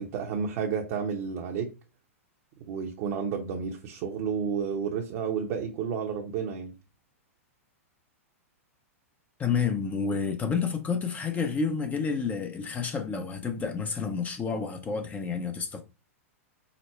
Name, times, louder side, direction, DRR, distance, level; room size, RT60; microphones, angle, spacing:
voice 1, 0.0-1.7 2.7-6.7, right 6 dB, 50° right, 0.9 m, -31 dB
voice 2, 9.4-15.8, left 5 dB, 20° left, 0.6 m, -29 dB
5.1 x 2.1 x 4.3 m
hypercardioid pair, 115°, 8 cm